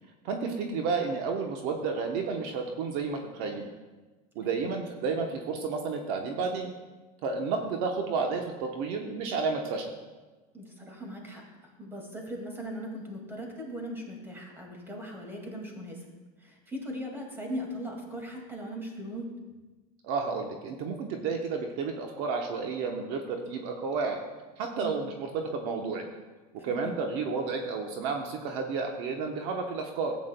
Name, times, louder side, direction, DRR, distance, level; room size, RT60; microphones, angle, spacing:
voice 1, 0.2-3.7 4.3-6.7 7.2-9.9 20.0-24.2 24.6-26.0 26.6-30.2, right 4 dB, 60° right, 3 dB, 1.0 m, -31 dB
voice 2, 10.5-11.4 11.8-16.1 16.4-19.3 24.8-24.9 26.6-26.9, equal, 10° right, 0 dB, 2.1 m, -39 dB
14.5 x 8.4 x 2.2 m, 1.2 s
supercardioid pair, 135°, 20 cm